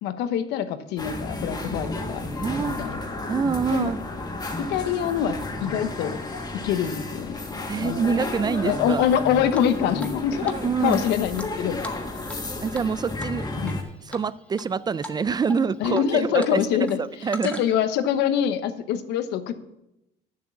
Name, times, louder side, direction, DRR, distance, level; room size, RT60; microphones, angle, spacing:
voice 1, 0.0-2.2 2.7-3.0 3.7-3.9 4.6-6.2 6.5-7.4 7.8-8.1 8.6-10.5 10.8-11.8 13.6-13.7 15.8-17.0 17.4-19.6, left 9 dB, 85° left, 10 dB, 1.0 m, -25 dB
sound 1, 1.0-13.8, left 2 dB, 25° left, 1.8 m, -32 dB
voice 2, 2.4-2.8 3.3-4.0 7.7-9.1 10.4-11.0 12.6-13.5 14.1-16.6 17.2-17.6, right 5 dB, 25° right, 17 dB, 0.3 m, -26 dB
Drip, 9.5-10.2 10.5-10.6 10.9-12.5 12.7-12.9 13.2-13.7 14.1-14.7 15.0-15.2 15.5-16.5 16.8-17.9, left 1 dB, 10° left, 1.2 m, -40 dB
8.7 x 7.4 x 7.0 m, 0.87 s
cardioid pair, 110°, 17 cm